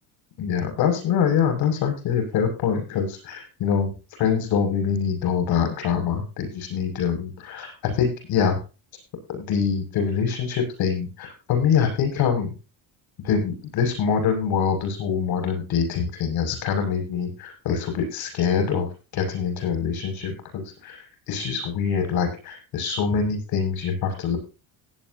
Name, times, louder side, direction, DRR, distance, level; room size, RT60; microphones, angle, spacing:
voice 1, 0.4-3.9 4.2-8.6 9.3-12.5 13.2-24.4, left 7 dB, 50° left, 5 dB, 6.5 m, -24 dB
17.5 x 9.5 x 2.8 m, 0.32 s
cardioid pair, 180°, 46 cm